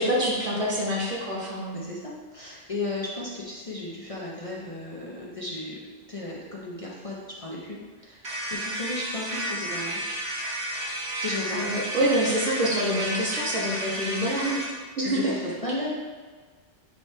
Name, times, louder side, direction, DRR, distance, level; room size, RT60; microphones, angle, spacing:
voice 1, 0.0-1.9 11.5-14.6 15.0-15.3, equal, 70° right, -6 dB, 1.8 m, -26 dB
voice 2, 1.7-5.8 6.1-8.2 8.5-10.0 11.2-11.8 13.8-14.0 15.0-15.9, left 2 dB, 35° left, -5 dB, 0.7 m, -34 dB
sound 1, 8.2-14.7, right 1 dB, 45° right, 1.6 m, -32 dB
9.3 x 3.2 x 3.2 m, 1.5 s
omnidirectional pair, 1.2 m